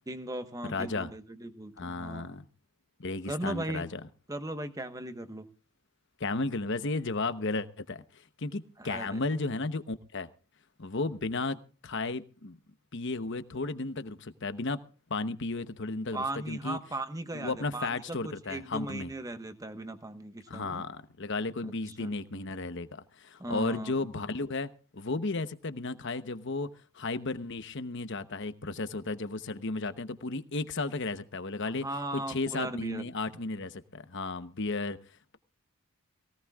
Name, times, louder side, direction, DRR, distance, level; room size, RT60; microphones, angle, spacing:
voice 1, 0.1-2.4 3.3-3.8 4.3-5.5 8.8-9.2 16.1-20.8 21.6-21.7 22.0-22.1 23.4-23.9 31.8-33.0, right 1 dB, 15° right, 1.2 m, -38 dB
voice 2, 0.6-1.1 1.8-2.5 3.0-4.0 6.2-10.3 10.8-12.6 12.9-14.8 15.1-16.8 17.3-19.1 20.5-26.7 26.9-31.9 32.1-35.0, left 3 dB, 55° left, 1.0 m, -34 dB
22.5 x 17.0 x 2.4 m
head